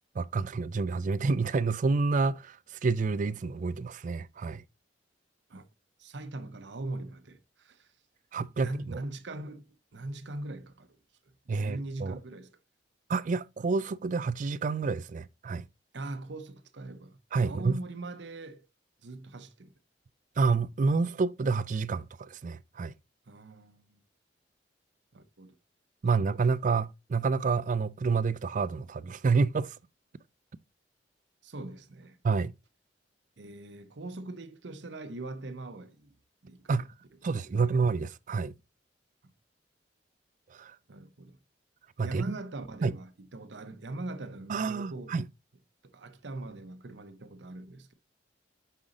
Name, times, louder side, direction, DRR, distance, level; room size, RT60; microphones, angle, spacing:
voice 1, 0.2-4.6 8.3-9.0 11.5-12.2 13.1-15.6 17.3-17.8 20.4-22.9 26.0-29.8 32.2-32.5 36.7-36.9 37.2-38.5 40.5-40.8 42.0-42.3 42.8-42.9 44.5-45.3, right 4 dB, 45° right, 0.3 m, -28 dB
voice 2, 6.0-7.9 8.6-9.6 9.9-10.9 11.5-12.5 15.9-17.2 17.4-18.6 19.0-19.8 23.3-24.0 25.1-25.6 31.4-32.2 33.4-36.1 36.4-36.7 37.5-37.7 39.2-39.3 40.9-41.4 42.0-45.3 45.8-47.9, right 2 dB, 75° right, 0.8 m, -41 dB
5.6 x 4.9 x 3.8 m
head